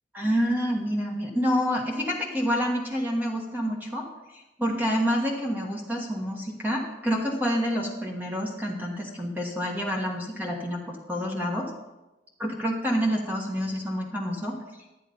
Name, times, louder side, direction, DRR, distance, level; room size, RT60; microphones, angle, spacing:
voice 1, 0.1-11.7 12.4-14.6, equal, 10° right, 0 dB, 1.5 m, -28 dB
10.5 x 9.2 x 5.2 m, 1.0 s
head